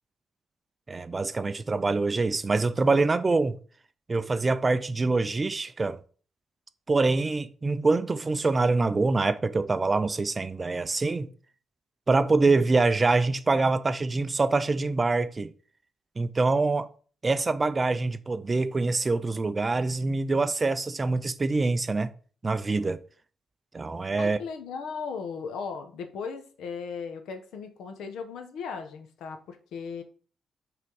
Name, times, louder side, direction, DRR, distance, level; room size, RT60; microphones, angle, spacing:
voice 1, 0.9-3.6 4.1-6.0 6.9-11.3 12.1-15.5 16.2-16.9 17.2-22.1 22.4-23.0 23.7-24.4, right 3 dB, 20° right, 0.3 m, -25 dB
voice 2, 24.2-30.0, left 5 dB, 90° left, 0.9 m, -37 dB
5.9 x 3.5 x 4.6 m
cardioid pair, 170°, 0 cm